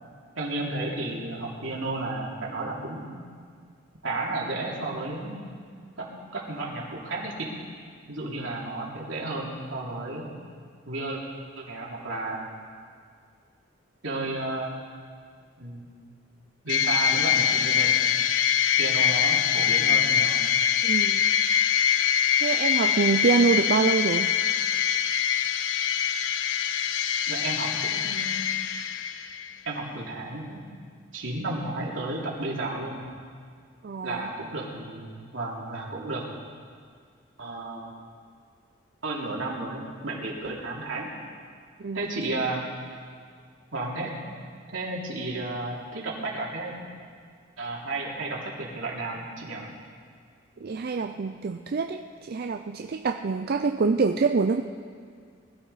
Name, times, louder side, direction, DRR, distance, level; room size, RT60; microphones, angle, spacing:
voice 1, 0.4-3.1 4.0-5.4 6.0-7.5 8.1-10.3 10.9-11.2 11.6-12.4 14.0-14.7 15.6-15.9 16.6-17.9 18.8-20.4 27.3-28.4 29.6-30.6 31.1-33.1 34.0-36.2 37.4-37.9 39.0-41.1 41.9-42.7 43.7-44.2 44.7-46.8 47.6-49.7, right 2 dB, 80° right, -3 dB, 2.9 m, -32 dB
sound 1, 16.7-29.5, left 9 dB, 70° left, 0.5 m, -24 dB
voice 2, 20.8-21.3 22.4-24.3 33.8-34.3 41.8-42.1 50.6-54.6, right 4 dB, 50° right, 6 dB, 0.4 m, -25 dB
20.5 x 13.0 x 4.1 m, 2.1 s
head